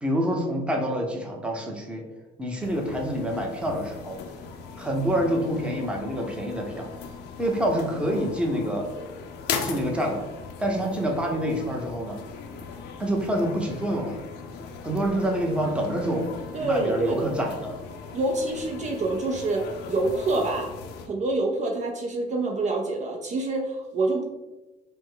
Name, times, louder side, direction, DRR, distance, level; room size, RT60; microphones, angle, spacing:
voice 1, 0.0-2.0 2.4-4.2 4.8-6.9 7.4-8.9 9.6-10.2 10.6-12.2 13.0-14.2 14.8-16.3 16.6-17.8, equal, 5° right, 0 dB, 0.8 m, -27 dB
sound 1, 2.6-21.1, left 6 dB, 80° left, 0.6 m, -39 dB
voice 2, 16.5-17.3 18.1-20.7 21.1-24.2, right 2 dB, 45° right, 2 dB, 0.5 m, -26 dB
5.1 x 2.1 x 3.8 m, 1.1 s
cardioid pair, 110°, 17 cm